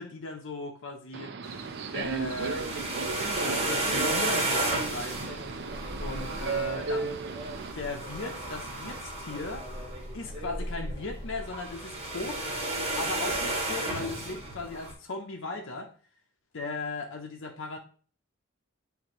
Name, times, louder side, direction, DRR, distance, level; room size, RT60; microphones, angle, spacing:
voice 1, 0.0-1.4 1.9-2.7 3.4-5.4 6.0-7.2 7.7-9.7 10.1-12.4 13.0-16.0 16.5-17.8, left 3 dB, 65° left, 0.8 m, -37 dB
Subway metro underground, 1.1-7.7, right 4 dB, 55° right, 0.5 m, -35 dB
sound 1, 1.4-9.0, right 4 dB, 85° right, 0.8 m, -47 dB
sound 2, 2.0-14.9, right 2 dB, 30° right, 1.6 m, -33 dB
8.6 x 3.6 x 3.0 m
head